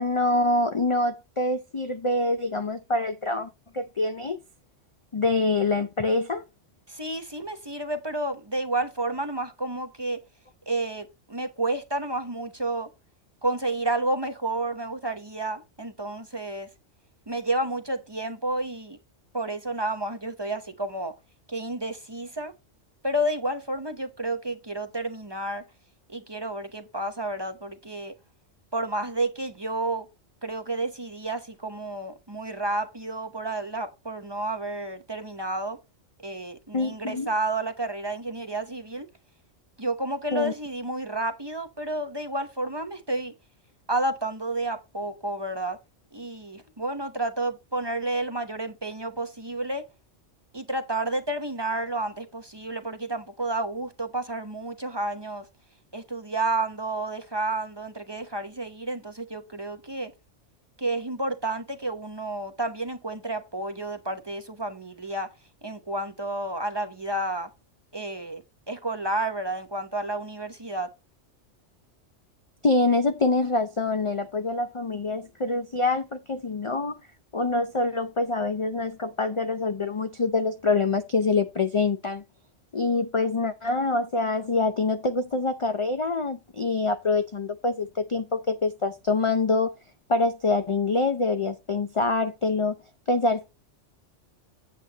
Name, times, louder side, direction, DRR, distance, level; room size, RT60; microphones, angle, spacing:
voice 1, 0.0-4.4 5.1-6.4 36.7-37.3 40.3-40.5 72.6-77.0 77.3-82.2 82.7-89.7 90.1-92.8 93.1-93.5, left 3 dB, 35° left, 0.5 m, -25 dB
voice 2, 6.9-10.2 10.7-12.9 13.4-16.7 17.3-19.0 19.3-21.1 21.5-22.5 23.0-25.6 26.1-28.1 28.7-30.1 30.4-35.8 36.2-39.1 39.8-43.3 43.9-45.8 46.1-49.8 50.5-55.4 55.9-60.1 60.8-65.3 65.6-67.5 67.9-68.4 68.7-70.9, right 2 dB, 25° right, 0.9 m, -30 dB
8.5 x 8.1 x 2.9 m
omnidirectional pair, 1.3 m